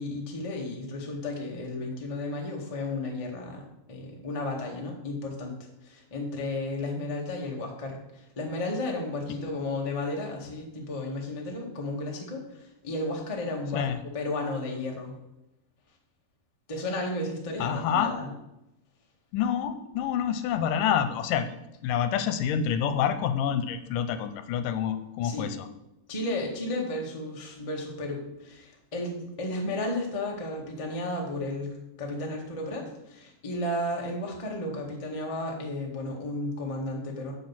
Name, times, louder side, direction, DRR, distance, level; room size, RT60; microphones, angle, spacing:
voice 1, 0.0-5.5 5.8-13.9 14.1-15.1 16.7-18.3 25.2-25.5 26.1-37.3, left 2 dB, 30° left, -1 dB, 0.6 m, -33 dB
voice 2, 17.6-18.2 19.3-21.6 21.8-25.7, left 8 dB, 80° left, 10 dB, 2.3 m, -27 dB
7.0 x 6.2 x 7.3 m, 0.89 s
omnidirectional pair, 3.9 m